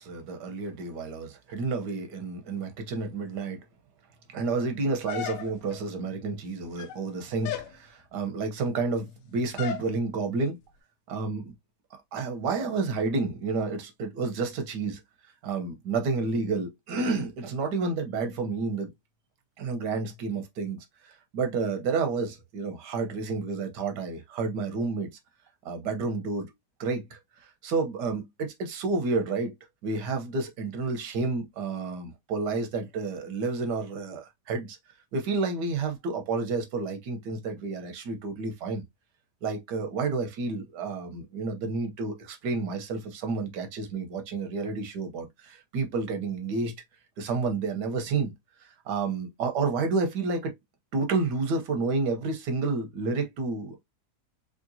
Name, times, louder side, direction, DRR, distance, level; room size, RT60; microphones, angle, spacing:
voice 1, 0.0-3.6 4.3-10.6 11.1-11.5 12.1-15.0 15.4-18.9 19.6-25.1 25.6-26.5 26.8-29.5 29.8-34.8 35.1-38.8 39.4-46.7 47.2-48.3 48.9-50.5 50.9-53.8, right 4 dB, 85° right, 1.5 m, -30 dB
sound 1, 5.1-5.8 6.6-7.1 7.4-7.8 9.6-9.9, left 8 dB, 90° left, 1.2 m, -35 dB
3.7 x 3.3 x 2.6 m
omnidirectional pair, 1.7 m